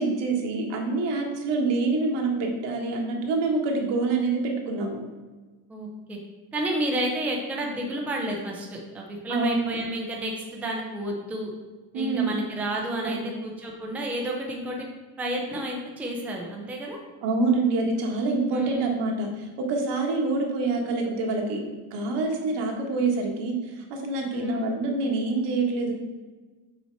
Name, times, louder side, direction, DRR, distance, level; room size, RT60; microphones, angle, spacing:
voice 1, 0.0-5.0 9.3-9.8 11.9-12.3 12.9-13.3 17.2-21.6 21.9-25.9, right 3 dB, 75° right, 2 dB, 1.3 m, -26 dB
voice 2, 5.7-6.2 6.5-11.5 11.9-14.9 15.2-17.0 18.5-18.9 24.3-24.7, right 1 dB, 5° right, -1 dB, 0.5 m, -31 dB
5.6 x 4.4 x 4.4 m, 1.3 s
cardioid pair, 175°, 42 cm